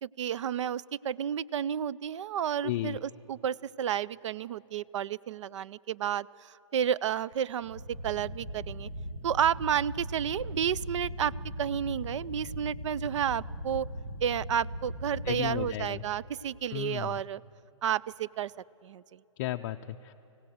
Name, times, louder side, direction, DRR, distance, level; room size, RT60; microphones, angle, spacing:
voice 1, 0.0-8.9 9.2-11.3 11.6-13.9 14.2-17.4 17.8-18.5 18.8-19.2, right 9 dB, 65° right, 21 dB, 0.4 m, -31 dB
voice 2, 2.6-3.0 15.3-16.0 16.7-17.2 19.4-20.1, left 14 dB, 35° left, 6 dB, 0.4 m, -34 dB
sound 1, 7.6-15.7, equal, 80° right, 2.4 m, -39 dB
24.5 x 16.5 x 7.8 m, 2.8 s
hypercardioid pair, 140°, 17 cm